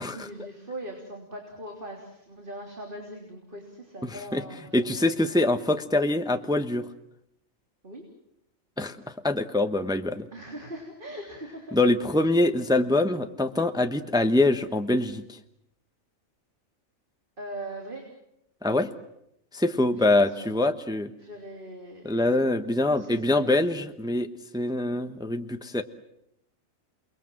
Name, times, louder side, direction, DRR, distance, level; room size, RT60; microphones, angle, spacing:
voice 1, 0.0-5.1 7.8-8.1 10.3-11.8 17.4-18.0 20.0-20.5 21.2-22.2 22.9-23.6, right 1 dB, 40° right, 1 dB, 3.6 m, -41 dB
voice 2, 4.0-4.4 4.7-6.9 8.8-10.3 11.7-15.4 18.6-18.9 19.5-21.1 22.0-24.3 24.5-25.8, left 2 dB, 5° right, 8 dB, 0.9 m, -24 dB
29.0 x 21.0 x 7.6 m, 0.79 s
omnidirectional pair, 1.4 m